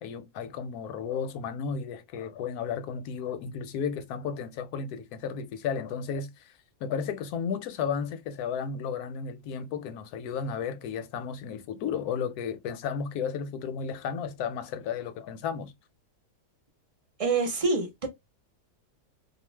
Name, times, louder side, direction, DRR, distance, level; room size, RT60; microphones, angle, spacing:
voice 1, 0.0-6.5 6.8-15.7, left 6 dB, 75° left, 1.0 m, -33 dB
voice 2, 17.2-18.1, right 3 dB, 40° right, 0.5 m, -26 dB
2.5 x 2.4 x 3.1 m
omnidirectional pair, 1.8 m